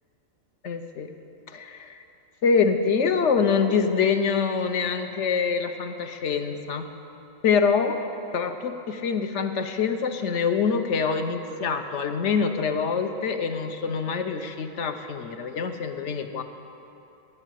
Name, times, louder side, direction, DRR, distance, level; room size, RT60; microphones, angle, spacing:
voice 1, 0.6-1.1 1.5-2.0 2.4-6.9 7.4-8.0 8.3-16.4, left 5 dB, 65° left, 7 dB, 1.0 m, -25 dB
13.0 x 6.1 x 9.1 m, 2.8 s
omnidirectional pair, 1.4 m